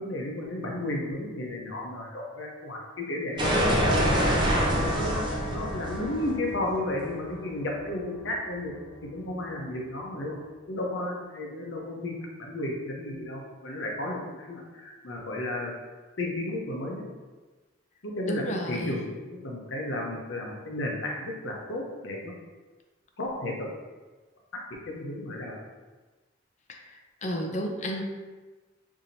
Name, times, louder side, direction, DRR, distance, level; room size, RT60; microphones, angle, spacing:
voice 1, 0.0-2.8 3.1-8.7 9.0-10.4 10.7-15.7 16.2-17.0 18.0-22.3 23.2-23.7 24.9-25.6 28.0-28.1, left 1 dB, 70° left, -1 dB, 0.8 m, -33 dB
sound 1, 3.4-8.1, equal, 25° right, 0.6 m, -26 dB
voice 2, 18.3-19.0 27.2-28.0, equal, 35° left, 2 dB, 0.5 m, -31 dB
4.8 x 2.7 x 2.7 m, 1.3 s
head